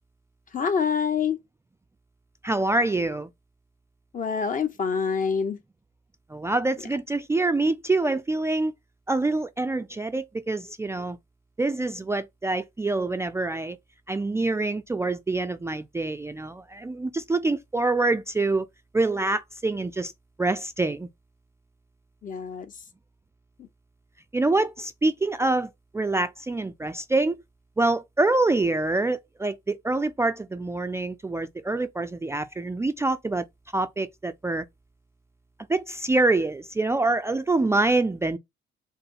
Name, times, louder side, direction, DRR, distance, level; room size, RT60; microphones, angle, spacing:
voice 1, 0.5-1.4 4.1-5.6 22.2-22.7, left 6 dB, 45° left, 0.9 m, -26 dB
voice 2, 2.4-3.3 6.3-8.7 9.1-11.2 11.6-13.8 14.1-18.7 18.9-20.1 20.4-21.1 24.3-27.4 27.8-33.5 33.7-34.7 35.7-38.4, right 2 dB, 15° right, 0.3 m, -25 dB
4.9 x 2.1 x 4.6 m
cardioid pair, 90°, 20 cm